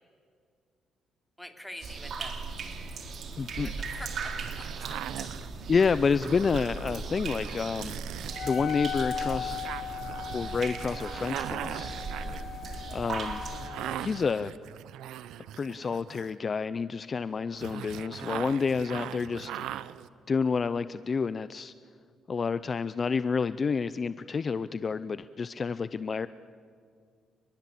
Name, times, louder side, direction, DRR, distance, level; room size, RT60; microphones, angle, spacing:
voice 1, 1.4-2.4 3.6-5.3 12.2-12.5, left 1 dB, 5° left, 5 dB, 3.5 m, -46 dB
sound 1, 1.8-13.7, right 4 dB, 60° right, 3.8 m, -38 dB
voice 2, 3.4-3.7 5.7-8.0 8.4-9.6 10.3-11.9 12.9-13.4 14.0-14.5 15.6-19.7 20.3-21.7 22.3-26.3, left 5 dB, 40° left, 14 dB, 0.6 m, -29 dB
sound 2, 3.9-16.5 17.5-20.1, right 11 dB, 85° right, 0.9 m, -41 dB
Wind instrument woodwind instrument, 8.3-14.1, left 8 dB, 70° left, 1.1 m, -38 dB
29.0 x 21.0 x 8.5 m, 2.2 s
cardioid pair, 90°, 0 cm